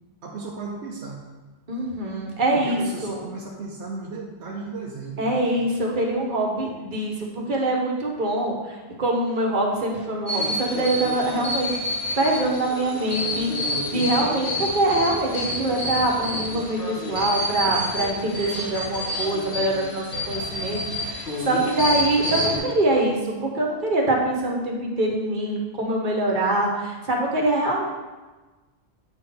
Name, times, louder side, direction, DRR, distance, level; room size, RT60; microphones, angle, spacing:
voice 1, 0.2-1.2 2.5-5.4 13.6-14.0 17.7-18.1, right 4 dB, 90° right, -2 dB, 1.0 m, -35 dB
voice 2, 1.7-3.2 5.2-11.8 12.2-27.8, right 1 dB, 50° right, -1 dB, 1.3 m, -24 dB
sound 1, 10.3-22.6, equal, 70° left, 1.8 m, -29 dB
8.1 x 3.8 x 4.3 m, 1.2 s
omnidirectional pair, 1.1 m